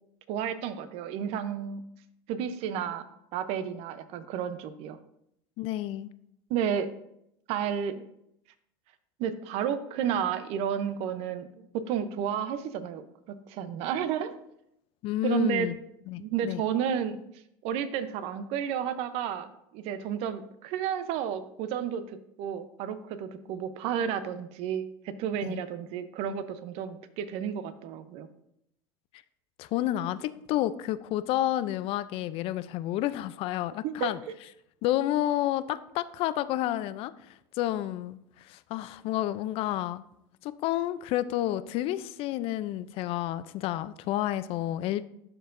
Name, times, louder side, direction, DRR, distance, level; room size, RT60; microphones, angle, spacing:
voice 1, 0.3-1.8 2.3-3.1 3.3-5.0 6.5-6.9 7.5-8.0 9.2-13.0 13.5-14.3 15.2-15.7 16.2-17.2 17.6-19.5 19.7-22.0 22.4-28.3 33.8-34.1, right 8 dB, 60° right, 12 dB, 0.7 m, -31 dB
voice 2, 5.6-6.1 15.0-15.8 16.1-16.6 25.4-25.6 29.6-34.2 34.8-40.0 40.4-45.0, left 14 dB, 55° left, 14 dB, 0.4 m, -30 dB
12.0 x 4.5 x 2.5 m, 0.78 s
supercardioid pair, 115°, 12 cm